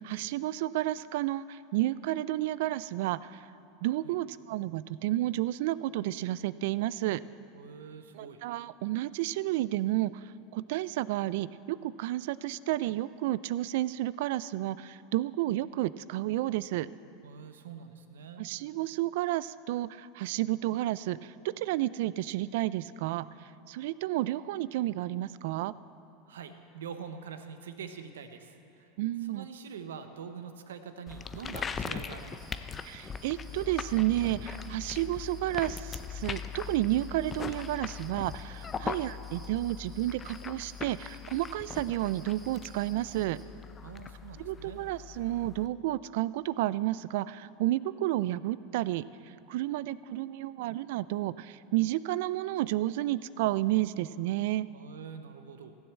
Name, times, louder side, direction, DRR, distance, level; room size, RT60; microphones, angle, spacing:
voice 1, 0.0-3.5 3.8-7.2 8.1-16.9 18.4-23.2 23.7-25.7 29.0-29.5 32.8-43.4 44.4-49.0 49.5-54.7, right 15 dB, 70° right, 18 dB, 0.3 m, -31 dB
voice 2, 7.5-8.4 17.2-18.4 26.3-28.9 29.3-32.7 38.8-39.0 43.8-44.8 54.7-55.7, right 6 dB, 85° right, 9 dB, 0.8 m, -45 dB
sound 1, 31.1-45.7, left 6 dB, 25° left, 0.6 m, -40 dB
sound 2, 32.2-43.4, equal, 10° right, 3.2 m, -57 dB
15.0 x 7.2 x 7.5 m, 2.9 s
hypercardioid pair, 105°, 0 cm